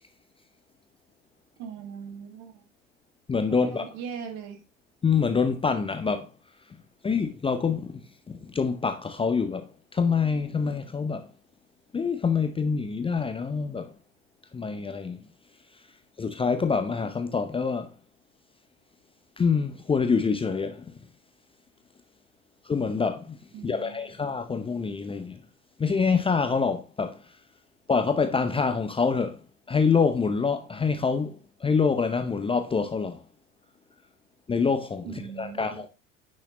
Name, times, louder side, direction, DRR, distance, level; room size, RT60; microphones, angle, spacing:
voice 1, 1.6-2.6 3.5-4.6 23.5-24.1 35.0-35.8, right 7 dB, 45° right, 2.0 m, -39 dB
voice 2, 3.3-3.9 5.0-6.3 7.0-11.3 11.9-13.9 14.5-15.2 16.2-17.9 19.4-20.9 22.6-23.4 23.6-25.4 25.8-27.2 27.9-29.4 29.7-33.2 34.5-35.9, left 5 dB, 15° left, 0.8 m, -26 dB
10.0 x 6.4 x 3.1 m
figure-of-eight pair, 70°, 40 cm